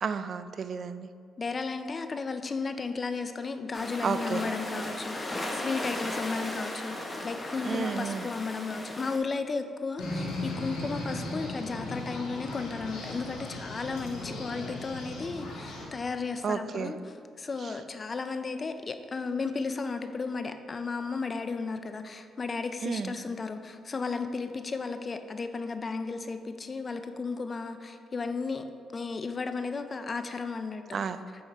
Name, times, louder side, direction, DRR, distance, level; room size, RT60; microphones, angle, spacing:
voice 1, 0.0-1.1 4.0-4.4 7.6-8.3 16.4-16.9 22.8-23.2 30.9-31.2, right 6 dB, 50° right, 11 dB, 0.3 m, -32 dB
voice 2, 1.4-7.0 7.2-28.6 28.9-31.0, left 4 dB, 35° left, 8 dB, 0.4 m, -34 dB
sound 1, 3.7-9.2, left 1 dB, 20° left, 0.9 m, -36 dB
sound 2, 10.0-15.9, left 2 dB, 80° left, 1.3 m, -37 dB
8.5 x 3.7 x 4.2 m, 2.3 s
cardioid pair, 90°, 0 cm